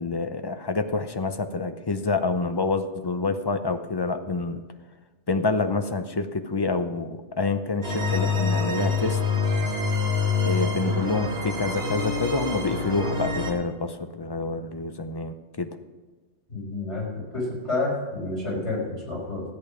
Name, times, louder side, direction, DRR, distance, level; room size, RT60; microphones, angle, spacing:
voice 1, 0.0-4.6 5.3-9.2 10.4-15.7, left 3 dB, 30° left, 8 dB, 0.5 m, -27 dB
sound 1, 7.8-13.5, left 4 dB, 65° right, 1.9 m, -26 dB
voice 2, 16.5-19.4, left 2 dB, 75° left, -4 dB, 4.8 m, -29 dB
13.5 x 8.7 x 5.0 m, 1.3 s
omnidirectional pair, 1.2 m